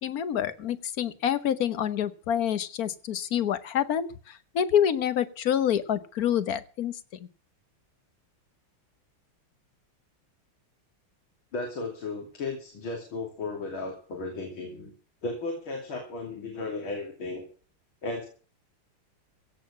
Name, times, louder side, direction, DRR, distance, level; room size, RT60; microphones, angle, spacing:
voice 1, 0.0-7.0, left 9 dB, 55° left, 14 dB, 1.2 m, -27 dB
voice 2, 11.5-14.9 15.2-17.5 18.0-18.3, left 3 dB, 70° left, 1 dB, 3.7 m, -35 dB
16.5 x 6.7 x 8.6 m, 0.39 s
omnidirectional pair, 2.3 m